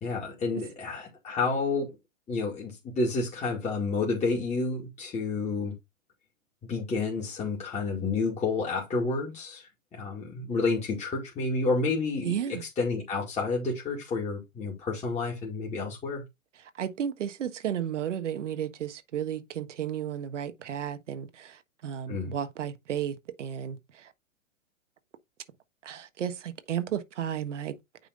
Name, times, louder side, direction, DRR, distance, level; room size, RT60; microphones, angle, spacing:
voice 1, 0.0-1.9 2.3-5.7 6.7-16.2 22.1-22.3, left 3 dB, 15° left, 2.3 m, -30 dB
voice 2, 12.2-12.6 16.8-21.6 21.8-23.8 25.8-27.8, right 9 dB, 65° right, 1.5 m, -33 dB
9.1 x 3.6 x 3.9 m
hypercardioid pair, 120°, 39 cm